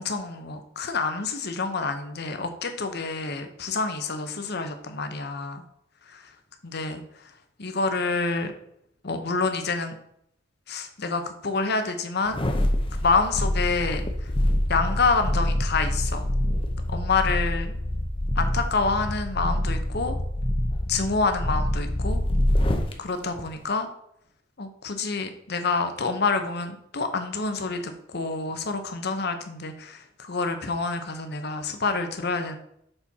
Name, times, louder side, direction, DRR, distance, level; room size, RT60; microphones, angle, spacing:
voice 1, 0.0-5.6 6.1-6.3 6.6-7.3 7.6-8.5 9.0-9.9 10.7-12.5 13.0-14.3 14.7-16.3 16.9-17.7 18.4-20.2 20.9-22.2 23.0-23.9 24.6-32.6, left 4 dB, 60° left, 7 dB, 0.9 m, -27 dB
sound 1, 12.3-22.9 23.4-23.5, left 1 dB, 30° left, 0.7 m, -26 dB
6.8 x 4.4 x 4.2 m, 0.73 s
head